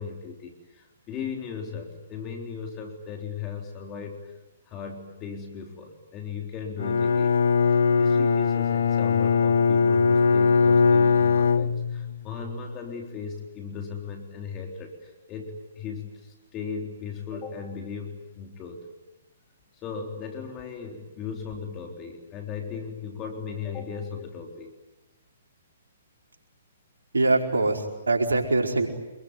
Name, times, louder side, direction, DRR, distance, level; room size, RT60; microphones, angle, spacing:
voice 1, 0.0-4.4 4.7-7.4 7.7-18.8 19.7-24.7, left 6 dB, 25° left, 3 dB, 3.8 m, -37 dB
Bowed string instrument, 6.8-12.2, left 5 dB, 70° left, 0.9 m, -21 dB
voice 2, 27.1-28.9, right 2 dB, 85° right, 2 dB, 4.9 m, -23 dB
26.5 x 22.5 x 9.7 m, 1.1 s
hypercardioid pair, 130°, 0 cm